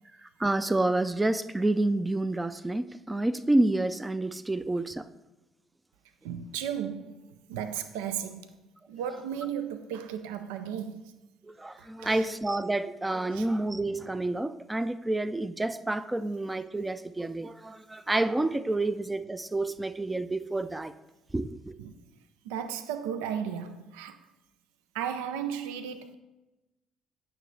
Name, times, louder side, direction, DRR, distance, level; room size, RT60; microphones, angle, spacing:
voice 1, 0.2-5.1 11.5-20.9 21.3-21.7, right 2 dB, 15° right, 0.4 m, -29 dB
voice 2, 6.2-8.5 8.9-11.1 11.8-12.3 13.3-13.5 21.8-21.9 22.4-24.2 24.9-26.1, right 8 dB, 85° right, 0.4 m, -35 dB
9.1 x 6.2 x 3.2 m
hypercardioid pair, 60°, 0 cm